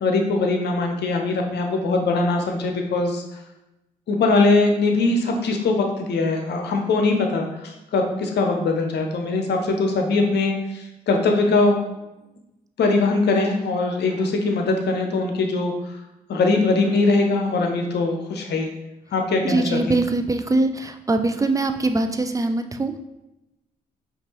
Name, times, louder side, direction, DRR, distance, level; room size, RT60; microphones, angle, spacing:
voice 1, 0.0-3.2 4.1-11.8 12.8-16.0 16.3-18.7 19.1-20.0, left 3 dB, 65° left, 3 dB, 0.8 m, -21 dB
voice 2, 19.4-23.0, right 2 dB, 20° right, 7 dB, 0.5 m, -22 dB
5.3 x 2.6 x 3.0 m, 0.95 s
hypercardioid pair, 45°, 19 cm